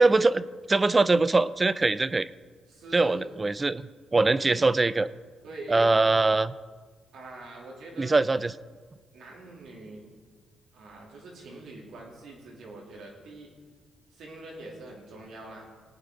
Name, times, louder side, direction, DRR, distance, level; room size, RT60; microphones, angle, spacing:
voice 1, 0.0-2.3 2.9-3.8 4.1-5.1 5.7-6.5 8.0-8.5, right 3 dB, 25° right, 16 dB, 0.4 m, -22 dB
voice 2, 2.7-3.2 4.4-4.6 5.4-5.9 7.1-8.2 9.1-10.1 10.7-13.5 14.1-15.7, right 2 dB, 70° right, -2 dB, 3.1 m, -44 dB
18.5 x 9.0 x 3.9 m, 1.5 s
cardioid pair, 90°, 0 cm